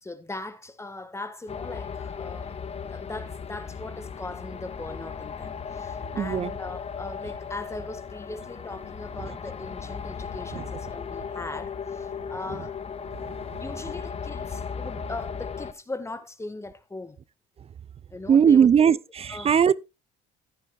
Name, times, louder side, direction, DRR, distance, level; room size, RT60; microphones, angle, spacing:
voice 1, 0.0-12.8 13.6-17.2 18.1-19.0 19.3-19.5, left 2 dB, 15° left, 1.4 m, -39 dB
sound 1, 1.5-15.7, left 6 dB, 35° left, 0.9 m, -36 dB
voice 2, 6.0-6.5 10.5-10.7 13.2-13.6 18.3-19.7, right 7 dB, 30° right, 0.4 m, -20 dB
14.0 x 10.0 x 2.3 m
supercardioid pair, 90°, 19 cm